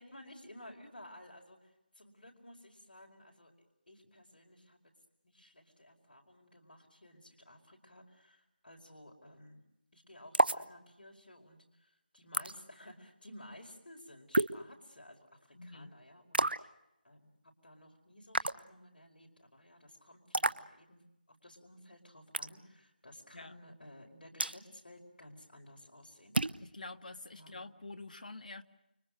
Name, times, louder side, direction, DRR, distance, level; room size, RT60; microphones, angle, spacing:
voice 1, 0.0-4.8 5.2-9.6 9.9-16.7 17.0-17.3 17.6-26.7 27.3-27.7, left 1 dB, 75° left, 5.0 m, -55 dB
sound 1, 10.3-10.7 12.3-12.5 14.3-14.6 16.3-16.7 18.3-18.6 20.3-20.6 22.3-22.6 24.4-24.6 26.3-26.6, right 2 dB, 90° right, 0.9 m, -29 dB
voice 2, 15.5-15.9 23.3-23.6 26.6-28.6, left 2 dB, 60° left, 1.7 m, -47 dB
30.0 x 25.0 x 6.4 m
figure-of-eight pair, 165°, 5 cm